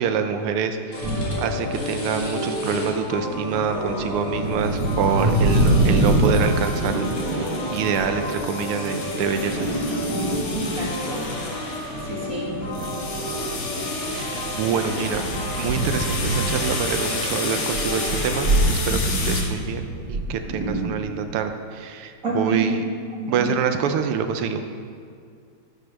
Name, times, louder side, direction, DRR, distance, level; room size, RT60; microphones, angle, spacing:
voice 1, 0.0-7.5 7.7-9.8 14.1-15.2 15.6-22.8 23.3-24.6, right 7 dB, 85° right, 7 dB, 1.7 m, -26 dB
sound 1, 0.9-18.6, left 1 dB, 50° left, 3.5 m, -32 dB
sound 2, 1.0-1.5 2.1-2.8 3.1-11.5 11.9-17.2 17.5-20.8, right 1 dB, 55° right, 3.1 m, -25 dB
sound 3, 4.6-19.4, left 3 dB, 85° left, 2.6 m, -33 dB
voice 2, 10.5-11.2 11.5-11.8 12.1-12.5 22.2-22.7 23.2-23.5, right 2 dB, 40° right, -3 dB, 2.7 m, -29 dB
12.0 x 9.5 x 6.4 m, 2.2 s
omnidirectional pair, 2.4 m